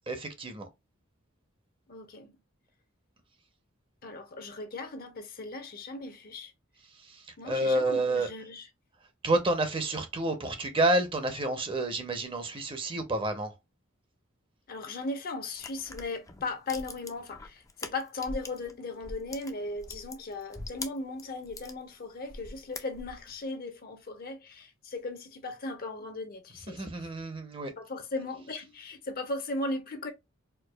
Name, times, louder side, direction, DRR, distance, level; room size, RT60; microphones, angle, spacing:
voice 1, 0.1-0.7 7.0-8.3 9.2-13.6 26.7-27.7, right 1 dB, 25° right, 0.7 m, -29 dB
voice 2, 1.9-2.3 4.0-6.5 7.4-8.7 14.7-27.1 27.8-30.1, left 2 dB, 45° left, 0.8 m, -37 dB
sound 1, 15.6-18.7 19.0-21.8 22.2-23.3, left 3 dB, 15° left, 0.5 m, -42 dB
4.5 x 2.3 x 2.2 m
head